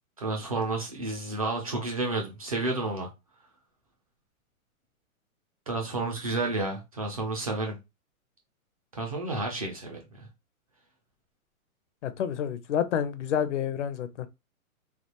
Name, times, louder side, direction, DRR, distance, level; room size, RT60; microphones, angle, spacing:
voice 1, 0.2-3.1 5.7-7.7 8.9-10.3, right 2 dB, 25° right, 0.4 m, -31 dB
voice 2, 12.0-14.3, left 9 dB, 55° left, 0.5 m, -29 dB
3.2 x 2.4 x 2.8 m
hypercardioid pair, 155°, 43 cm